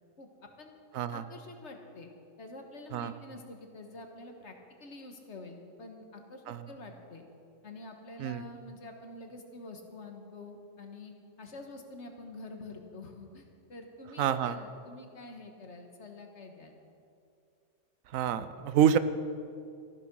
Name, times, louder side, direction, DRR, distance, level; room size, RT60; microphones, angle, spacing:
voice 1, 1.1-2.1 2.4-4.5 4.8-7.2 7.6-11.1 11.4-16.7, left 2 dB, 60° left, 3 dB, 1.7 m, -47 dB
voice 2, 14.2-14.6 18.1-19.0, right 9 dB, 90° right, 13 dB, 1.1 m, -27 dB
14.5 x 11.0 x 6.2 m, 2.5 s
omnidirectional pair, 1.4 m